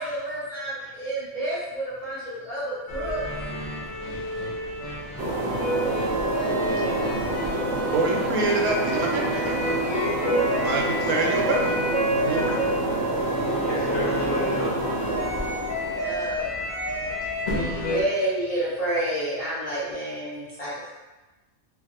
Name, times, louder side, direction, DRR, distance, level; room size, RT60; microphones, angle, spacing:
voice 1, 0.0-3.2 15.9-16.6 17.5-20.7, right 1 dB, 40° left, -9 dB, 0.6 m, -29 dB
sound 1, 2.9-18.0, equal, 80° left, 0.4 m, -29 dB
sound 2, 5.2-16.2, right 2 dB, 65° right, 0.7 m, -28 dB
voice 2, 7.9-9.6 10.6-11.8 12.2-12.6, right 3 dB, 85° right, -1 dB, 1.0 m, -26 dB
voice 3, 13.6-14.7 17.0-17.3 20.6-20.9, left 2 dB, 65° left, -6 dB, 1.1 m, -33 dB
2.7 x 2.6 x 2.6 m, 1.1 s
omnidirectional pair, 1.4 m